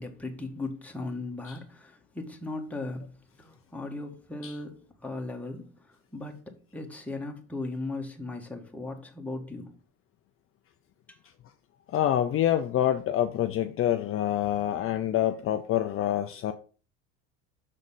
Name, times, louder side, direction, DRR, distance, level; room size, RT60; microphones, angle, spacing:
voice 1, 0.0-9.8 11.1-11.2, left 2 dB, 5° left, 1.6 m, -38 dB
voice 2, 11.9-16.5, left 11 dB, 40° left, 0.6 m, -26 dB
6.5 x 3.9 x 5.5 m
supercardioid pair, 105°, 35 cm